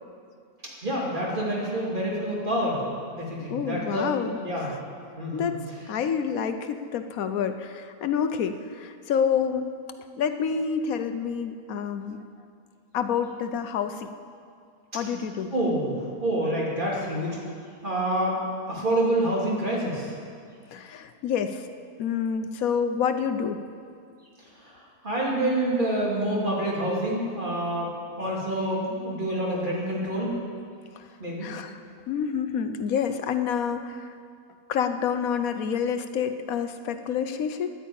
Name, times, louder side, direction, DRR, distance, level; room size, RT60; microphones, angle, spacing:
voice 1, 0.8-2.8 3.1-4.0 4.4-4.7 5.1-5.5 15.5-17.4 17.8-20.1 24.4-27.9 28.2-30.3 31.2-31.5, right 1 dB, 30° right, -5 dB, 2.9 m, -27 dB
voice 2, 3.5-4.7 5.3-5.6 5.9-9.7 10.2-12.2 12.9-14.1 14.9-15.5 20.7-21.6 22.0-23.6 31.0-31.1 31.4-31.8 32.1-34.1 34.7-37.7, left 7 dB, 70° left, 9 dB, 1.1 m, -28 dB
11.0 x 9.8 x 8.6 m, 2.2 s
omnidirectional pair, 1.7 m